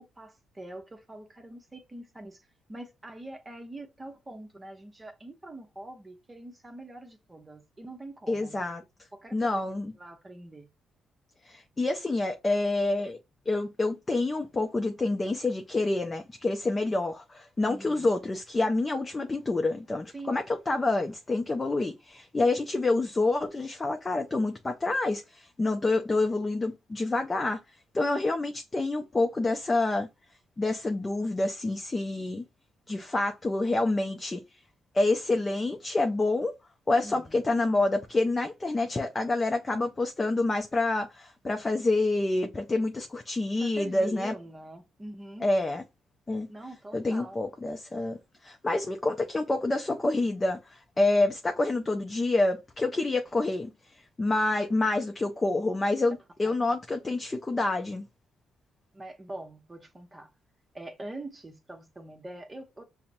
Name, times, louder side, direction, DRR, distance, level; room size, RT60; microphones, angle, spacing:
voice 1, 0.0-8.6 9.1-10.7 17.6-18.1 20.1-20.4 37.0-37.4 43.6-45.5 46.5-47.4 56.4-56.5 58.9-60.3 60.7-62.8, right 1 dB, 20° right, 0.8 m, -44 dB
voice 2, 8.3-8.8 9.3-9.9 11.4-13.2 13.5-27.6 27.9-30.1 30.6-32.4 32.9-34.4 34.9-36.5 36.9-44.3 45.4-45.8 46.3-46.5 46.9-53.7 54.2-58.0, left 2 dB, 25° left, 0.5 m, -27 dB
5.6 x 2.1 x 2.6 m
cardioid pair, 90°, 0 cm